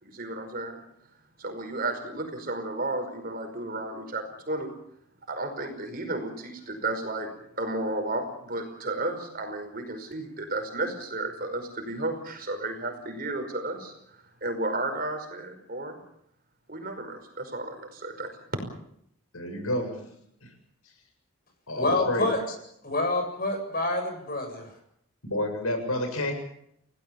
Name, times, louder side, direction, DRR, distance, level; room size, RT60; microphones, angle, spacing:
voice 1, 0.0-0.8 1.4-4.7 5.3-16.0 16.7-18.4, right 2 dB, 40° right, 6 dB, 5.3 m, -33 dB
voice 2, 19.3-20.1 20.4-20.5 21.7-22.3 25.2-26.3, left 1 dB, 85° left, 6 dB, 7.4 m, -29 dB
voice 3, 21.8-22.4 22.8-24.7, left 2 dB, 40° left, 5 dB, 7.5 m, -27 dB
30.0 x 17.5 x 7.2 m, 0.73 s
head